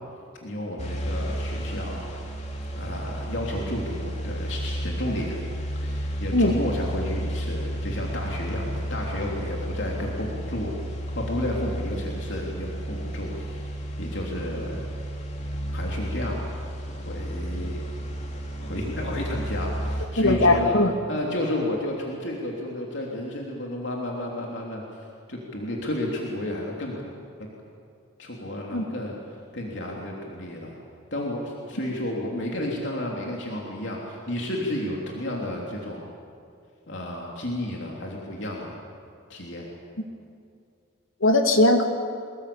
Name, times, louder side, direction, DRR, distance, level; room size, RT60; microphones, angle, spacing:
voice 1, 0.4-2.1 2.7-5.4 5.7-13.7 14.0-14.8 15.7-16.4 16.9-17.8 18.6-20.8 21.1-24.8 25.3-27.1 28.2-29.1 29.5-30.8 31.1-36.0 36.9-38.8 39.3-39.7, left 1 dB, 60° left, -2 dB, 3.3 m, -32 dB
sound 1, 0.8-20.1, equal, 35° left, 3.1 m, -32 dB
voice 2, 20.2-20.9 28.7-28.8 41.2-41.9, left 2 dB, 80° left, 5 dB, 2.5 m, -19 dB
25.0 x 21.0 x 8.7 m, 2.5 s
head